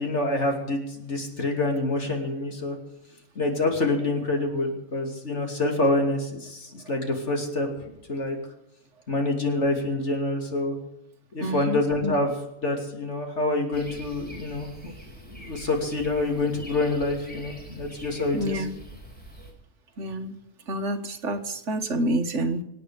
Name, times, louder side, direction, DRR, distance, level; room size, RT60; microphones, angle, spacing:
voice 1, 0.0-2.8 3.3-7.7 8.1-8.4 9.1-10.7 11.3-12.3 12.6-14.9 15.3-18.6, left 2 dB, 50° left, 2 dB, 2.9 m, -26 dB
voice 2, 11.4-12.1 18.3-18.8 20.0-20.3 20.7-22.6, right 1 dB, 55° right, 6 dB, 1.6 m, -28 dB
sound 1, 13.7-19.5, right 1 dB, 5° left, 3.7 m, -44 dB
25.0 x 8.8 x 5.0 m, 0.86 s
omnidirectional pair, 1.6 m